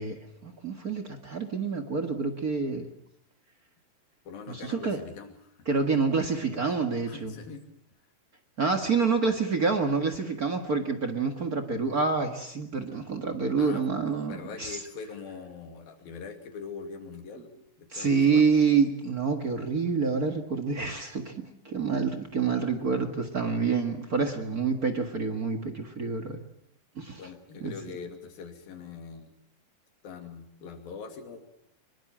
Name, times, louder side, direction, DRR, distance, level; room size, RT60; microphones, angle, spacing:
voice 1, 0.0-2.9 4.5-5.0 5.7-7.3 8.6-14.8 17.9-26.4 27.0-27.2 27.6-27.7, right 5 dB, 40° right, 5 dB, 1.3 m, -27 dB
voice 2, 4.3-5.7 7.1-7.7 13.6-13.8 14.3-18.6 27.2-29.3 30.0-31.4, left 5 dB, 85° left, 5 dB, 4.5 m, -42 dB
24.5 x 22.5 x 7.5 m, 0.75 s
omnidirectional pair, 4.1 m